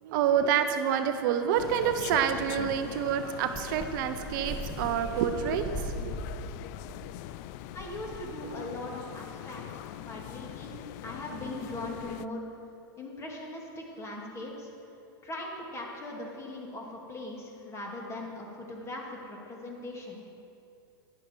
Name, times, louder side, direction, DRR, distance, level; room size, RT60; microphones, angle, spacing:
voice 1, 0.0-6.0, right 8 dB, 60° right, 8 dB, 0.8 m, -28 dB
sound 1, 1.6-12.3, left 14 dB, 50° left, 0.4 m, -42 dB
sound 2, 3.5-8.7, right 1 dB, ahead, 1.5 m, -40 dB
voice 2, 7.7-10.7 11.0-12.4 13.0-14.7 15.2-20.2, left 1 dB, 25° left, -1 dB, 2.5 m, -40 dB
11.5 x 10.5 x 4.6 m, 2.7 s
hypercardioid pair, 115°, 12 cm